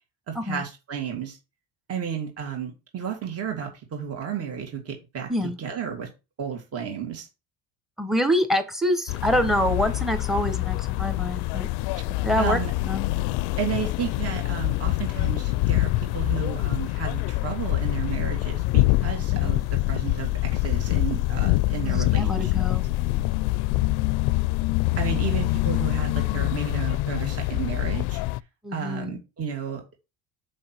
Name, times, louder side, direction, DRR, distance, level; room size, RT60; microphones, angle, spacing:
voice 1, 0.3-1.4 1.9-5.3 5.6-6.1 6.4-7.3 12.4-12.7 13.6-22.5 25.0-28.2 28.7-30.0, right 8 dB, 40° right, 2.1 m, -32 dB
voice 2, 8.0-11.7 12.2-13.1 19.1-19.6 21.8-22.8 28.6-29.2, equal, ahead, 1.2 m, -26 dB
sound 1, 9.1-28.4, left 19 dB, 80° left, 0.5 m, -25 dB
6.3 x 5.3 x 4.5 m
cardioid pair, 135°, 39 cm